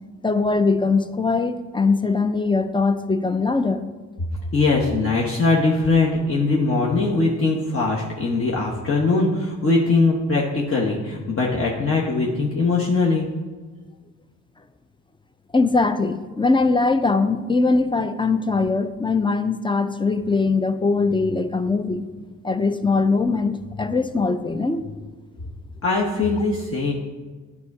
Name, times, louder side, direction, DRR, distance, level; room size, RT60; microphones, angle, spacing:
voice 1, 0.2-3.9 15.5-22.0 22.4-25.0, left 3 dB, 15° left, 11 dB, 0.5 m, -21 dB
voice 2, 4.5-13.3 25.8-26.9, left 3 dB, 40° left, -3 dB, 1.1 m, -21 dB
9.5 x 3.6 x 4.8 m, 1.4 s
supercardioid pair, 60°, 34 cm